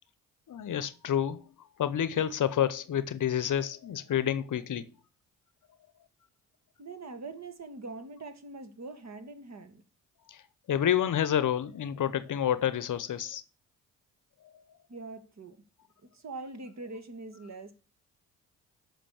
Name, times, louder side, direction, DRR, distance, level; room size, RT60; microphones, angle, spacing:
voice 1, 0.5-1.4 1.8-4.9 10.3-10.4 10.7-13.4, left 10 dB, 55° left, 0.8 m, -29 dB
voice 2, 6.8-9.8 14.9-15.6 16.1-17.7, right 3 dB, 45° right, 1.8 m, -43 dB
7.5 x 5.4 x 7.1 m
hypercardioid pair, 45°, 38 cm